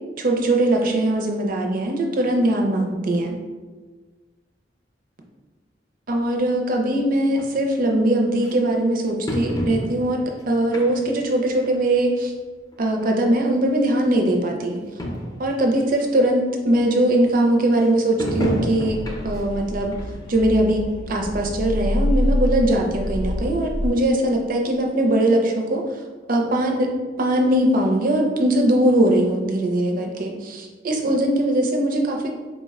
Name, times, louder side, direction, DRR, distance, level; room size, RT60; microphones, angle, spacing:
voice 1, 0.2-3.3 6.1-12.3 12.8-14.8 15.4-20.0 20.3-25.8 26.3-26.9 27.2-32.3, right 1 dB, 50° right, 2 dB, 0.5 m, -21 dB
sound 1, 7.4-7.5 8.4-8.5 9.3-10.2 10.7-11.2 11.6-11.8 12.7-12.8 13.0-13.1 13.9-14.0 14.4-14.5 14.7-14.8 15.0-15.4 16.0-16.1 18.2-19.5 19.9-20.1 20.6-20.7, equal, 20° left, 0.5 m, -28 dB
sound 2, 18.9-23.9, left 1 dB, 70° left, 0.5 m, -26 dB
4.0 x 2.1 x 3.4 m, 1.4 s
head